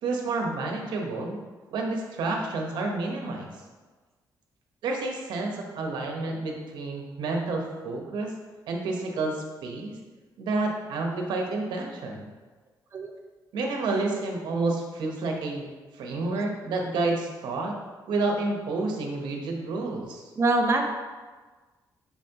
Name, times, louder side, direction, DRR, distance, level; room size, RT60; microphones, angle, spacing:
voice 1, 0.0-1.4 1.7-3.5 4.8-8.3 8.7-9.9 10.4-12.3 13.5-15.7 15.9-17.7 18.1-20.3, right 3 dB, 85° right, 1 dB, 1.1 m, -29 dB
voice 2, 20.4-20.9, right 2 dB, 35° right, 2 dB, 0.7 m, -24 dB
7.1 x 6.1 x 3.0 m, 1.3 s
cardioid pair, 120°, 7 cm